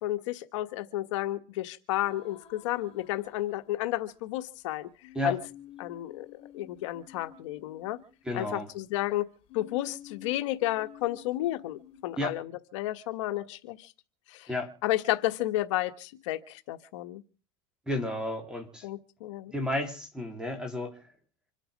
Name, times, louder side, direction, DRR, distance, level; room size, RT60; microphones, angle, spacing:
voice 1, 0.0-4.9 5.2-5.4 5.8-6.3 6.5-8.0 8.3-9.3 9.5-13.9 14.3-14.5 14.8-17.2 18.8-19.5, left 15 dB, 80° left, 8 dB, 1.2 m, -32 dB
sound 1, 2.0-4.2 5.0-8.7 9.5-12.2, left 10 dB, 35° left, 4.5 m, -51 dB
voice 2, 8.2-8.7 12.1-12.4 14.5-14.7 17.9-18.8 19.5-21.0, left 1 dB, 5° right, 5 dB, 3.6 m, -32 dB
26.5 x 9.1 x 5.1 m, 0.37 s
supercardioid pair, 135°, 16 cm